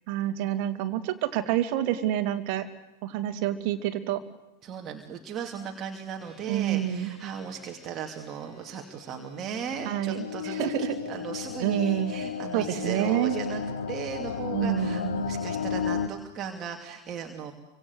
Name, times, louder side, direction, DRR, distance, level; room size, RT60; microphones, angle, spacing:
voice 1, 0.1-2.7 3.0-4.2 6.5-7.1 9.8-11.0 11.6-12.1 12.5-13.4 14.5-15.1, right 12 dB, 45° right, 9 dB, 2.6 m, -28 dB
voice 2, 4.6-13.6 13.9-17.5, right 7 dB, 30° right, 3 dB, 2.7 m, -37 dB
sound 1, 6.2-12.9, equal, 20° left, 7.9 m, -55 dB
sound 2, 9.1-16.1, left 6 dB, 60° left, 1.8 m, -33 dB
28.5 x 25.0 x 8.2 m, 0.97 s
figure-of-eight pair, 90°, 0 cm